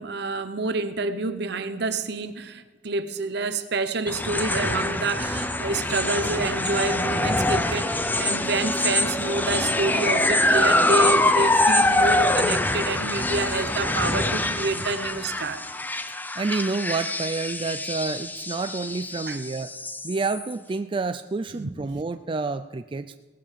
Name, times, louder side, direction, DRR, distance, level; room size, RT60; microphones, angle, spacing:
voice 1, 0.0-15.6 19.3-19.4 21.5-21.7, right 3 dB, 65° right, 11 dB, 1.0 m, -28 dB
sound 1, 4.1-20.5, left 1 dB, 10° left, 0.6 m, -24 dB
voice 2, 16.4-19.7 20.0-23.2, right 3 dB, 25° right, 9 dB, 0.4 m, -29 dB
17.5 x 8.5 x 7.5 m, 1.2 s
head